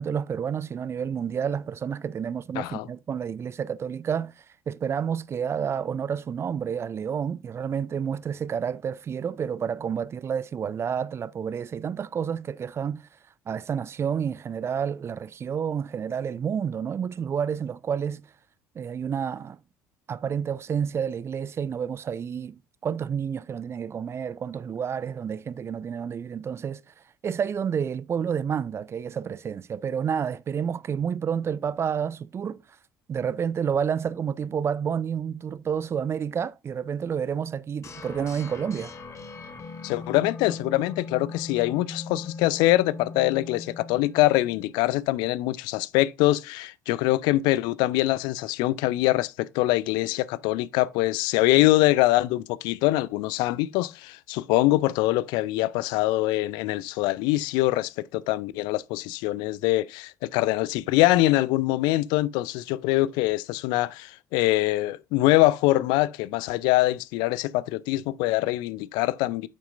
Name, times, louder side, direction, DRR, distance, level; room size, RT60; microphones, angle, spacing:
voice 1, 0.0-13.1 13.5-18.2 18.8-19.6 20.1-26.9 27.2-32.6 33.1-38.9, right 7 dB, 30° right, 0.4 m, -29 dB
voice 2, 2.6-2.9 39.8-69.5, left 17 dB, 55° left, 0.4 m, -24 dB
sound 1, 37.8-44.8, left 4 dB, 35° left, 1.6 m, -40 dB
9.0 x 7.1 x 2.5 m
figure-of-eight pair, 55°, 9 cm